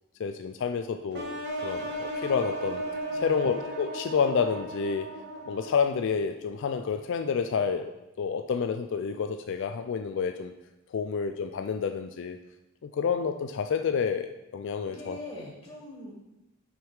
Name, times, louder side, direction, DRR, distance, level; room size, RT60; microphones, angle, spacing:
voice 1, 0.2-2.8 3.1-5.1 5.5-7.9 8.2-10.5 10.9-12.4 12.8-15.2, left 6 dB, 60° left, 7 dB, 0.4 m, -29 dB
sound 1, 1.1-6.0, right 1 dB, 55° right, 1.1 m, -35 dB
voice 2, 3.1-3.5 14.8-16.1, left 2 dB, 25° left, -4 dB, 1.7 m, -42 dB
6.3 x 5.1 x 4.8 m, 0.97 s
head